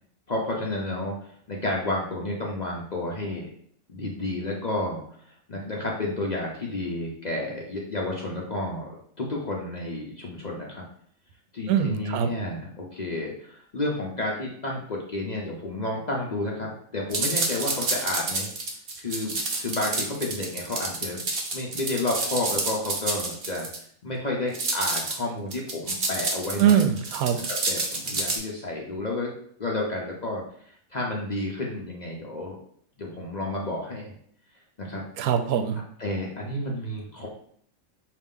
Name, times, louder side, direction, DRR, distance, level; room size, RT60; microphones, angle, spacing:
voice 1, 0.3-3.5 3.9-5.0 5.5-8.9 9.2-10.8 11.5-18.5 19.0-21.3 21.5-23.7 24.0-26.8 27.4-29.3 29.6-32.6 33.0-34.1 34.8-35.0 36.0-37.3, left 2 dB, 45° left, -2 dB, 0.6 m, -31 dB
voice 2, 11.7-12.3 26.6-27.4 35.2-35.8, right 8 dB, 85° right, 7 dB, 1.1 m, -22 dB
sound 1, 17.1-23.8 24.5-25.2 25.5-28.4, right 3 dB, 50° right, 0.9 m, -29 dB
5.5 x 2.4 x 3.6 m, 0.63 s
omnidirectional pair, 1.5 m